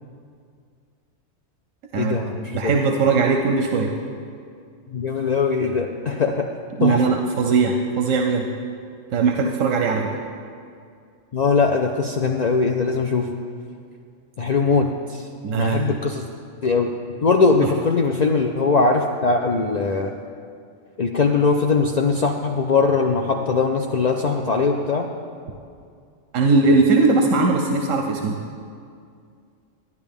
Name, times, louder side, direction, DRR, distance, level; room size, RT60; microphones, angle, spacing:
voice 1, 2.0-2.7 4.9-6.5 6.8-7.0 11.3-13.4 14.4-15.3 15.5-16.3 16.6-17.0 17.2-20.1 21.0-25.1, left 4 dB, 85° left, 2 dB, 0.3 m, -21 dB
voice 2, 2.5-3.9 6.8-8.5 9.1-10.1 15.4-15.8 26.3-28.4, right 4 dB, 85° right, 2 dB, 1.0 m, -19 dB
12.5 x 9.7 x 3.6 m, 2.3 s
omnidirectional pair, 1.3 m